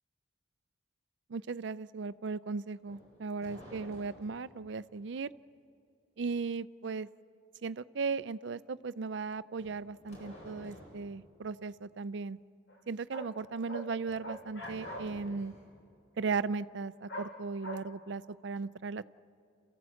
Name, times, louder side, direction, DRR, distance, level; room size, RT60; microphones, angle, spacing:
voice 1, 1.3-5.3 6.2-7.1 7.6-12.4 12.9-15.5 16.2-19.0, right 4 dB, 65° right, 16 dB, 0.5 m, -37 dB
sound 1, 2.8-4.6 9.5-11.1 14.0-15.7, equal, 35° left, 4.8 m, -52 dB
sound 2, 12.7-12.8 13.1-13.3 13.7-13.9 14.2-15.1 17.1-17.3 17.6-17.8, right 1 dB, 65° left, 2.2 m, -41 dB
28.0 x 15.0 x 7.8 m, 2.6 s
head